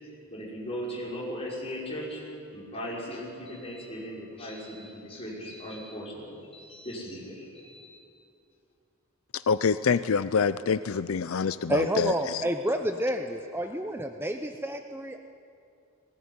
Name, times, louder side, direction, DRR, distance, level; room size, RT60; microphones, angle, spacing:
voice 1, 0.3-2.2 2.5-8.0, equal, 30° left, -4 dB, 5.7 m, -38 dB
voice 2, 9.3-12.5, left 5 dB, 75° left, 13 dB, 0.5 m, -26 dB
voice 3, 11.7-15.2, right 1 dB, 10° right, 6 dB, 0.7 m, -29 dB
19.5 x 18.5 x 9.6 m, 2.5 s
head